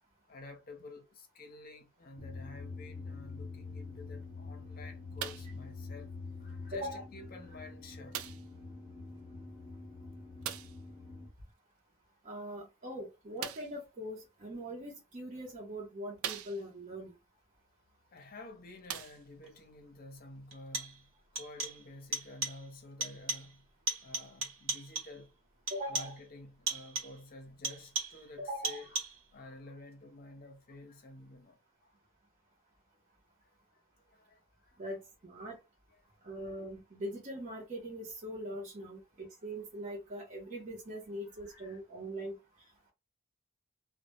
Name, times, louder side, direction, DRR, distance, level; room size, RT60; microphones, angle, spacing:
voice 1, 0.3-6.1 6.4-8.2 18.1-23.7 24.0-25.3 25.9-29.0 29.3-31.9 33.4-33.8 34.1-34.8 35.4-35.5 36.4-36.5 41.3-41.8, left 2 dB, 45° left, 0.6 m, -51 dB
sound 1, 2.2-11.3, left 3 dB, 5° left, 0.8 m, -46 dB
sound 2, 5.2-5.6 6.5-6.6 8.1-8.6 10.4-10.8 13.4-13.8 14.8-14.9 15.5-15.6 16.2-16.9 18.2-18.3 18.8-19.5 20.4-20.5, right 10 dB, 90° right, 0.3 m, -41 dB
voice 2, 12.2-17.1 25.7-26.1 28.4-28.8 34.8-35.6 36.2-42.4, equal, 35° right, 0.6 m, -41 dB
sound 3, 19.5-19.6 20.5-21.1 21.4-21.9 22.1-22.7 23.0-23.6 23.9-25.2 25.7-26.3 26.7-27.2 27.6-28.3 28.6-29.3, right 3 dB, 70° right, 0.8 m, -38 dB
2.1 x 2.0 x 2.9 m
head